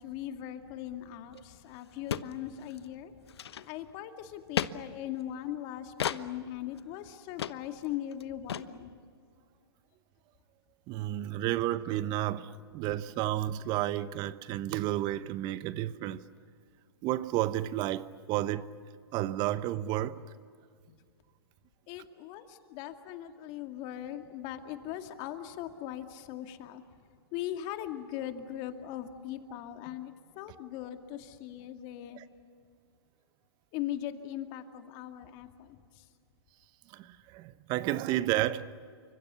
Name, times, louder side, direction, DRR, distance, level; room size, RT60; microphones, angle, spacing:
voice 1, 0.0-3.3 3.6-8.9 20.9-21.0 21.9-26.8 27.3-32.2 33.7-36.1, left 11 dB, 35° left, 2.2 m, -40 dB
sound 1, 1.4-1.5 1.7-1.8 2.1-2.3 2.7-2.9 3.3-3.9 4.6-4.7 6.0-6.2 6.8-6.9 7.4-7.6 7.8-7.9 8.1-8.2 8.5-8.7, left 9 dB, 75° left, 1.1 m, -33 dB
voice 2, 10.9-16.2 17.0-18.7 19.1-20.2 32.1-32.2 36.9-38.7, right 14 dB, 30° right, 1.0 m, -31 dB
29.0 x 25.5 x 6.9 m
hypercardioid pair, 130°, 14 cm